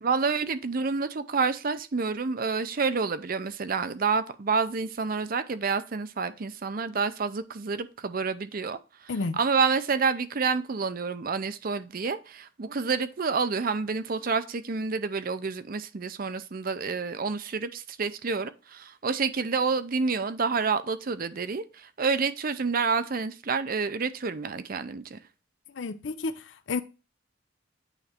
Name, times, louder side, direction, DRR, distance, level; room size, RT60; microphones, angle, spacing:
voice 1, 0.0-8.8 9.4-25.2, right 5 dB, 50° right, 0.6 m, -28 dB
voice 2, 9.1-9.4 25.7-26.8, left 3 dB, 75° left, 0.6 m, -31 dB
9.0 x 3.2 x 4.4 m
head